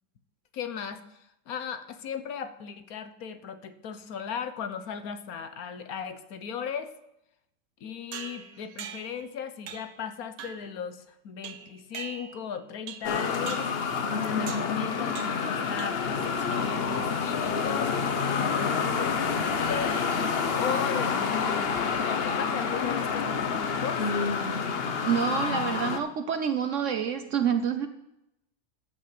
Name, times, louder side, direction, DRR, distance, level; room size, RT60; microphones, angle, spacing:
voice 1, 0.5-6.9 7.8-13.7 14.2-17.9 18.4-20.1 20.6-21.7 22.0-24.1, left 7 dB, 85° left, 10 dB, 1.3 m, -37 dB
sound 1, 8.1-9.2 9.7-10.0 10.4-10.7 11.4-12.5 12.9-13.2 13.5-13.8 14.5-14.8 15.2-15.5 15.8-16.2, right 8 dB, 80° right, 1.3 m, -42 dB
sound 2, 13.0-26.0, left 5 dB, 50° left, 1.0 m, -28 dB
voice 2, 25.1-27.9, right 8 dB, 65° right, 8 dB, 1.0 m, -27 dB
13.0 x 5.6 x 7.6 m, 0.85 s
omnidirectional pair, 1.5 m